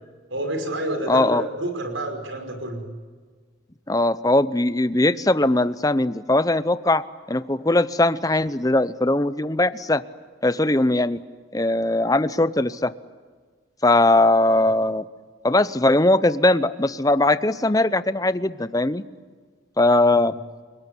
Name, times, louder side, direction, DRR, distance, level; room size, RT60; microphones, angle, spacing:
voice 1, 0.3-2.8 14.5-14.6 20.0-20.2, right 1 dB, 75° right, 5 dB, 5.7 m, -29 dB
voice 2, 1.1-1.4 3.9-10.0 10.4-11.2 11.5-12.9 13.8-15.0 15.4-19.0 19.8-20.3, left 2 dB, 15° left, 14 dB, 0.7 m, -20 dB
30.0 x 19.5 x 9.8 m, 1.5 s
head